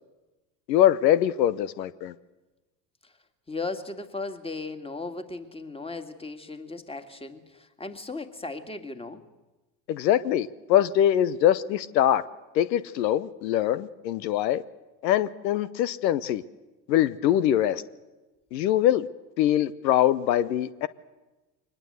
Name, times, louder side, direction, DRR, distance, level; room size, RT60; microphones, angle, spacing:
voice 1, 0.7-2.1 9.9-12.2 12.5-14.6 15.0-16.4 16.9-17.8 18.5-19.1 19.4-20.9, left 11 dB, 80° left, 16 dB, 0.9 m, -23 dB
voice 2, 3.5-9.2, left 3 dB, 10° left, 8 dB, 2.3 m, -36 dB
23.0 x 20.0 x 8.1 m, 1.1 s
hypercardioid pair, 80°, 50 cm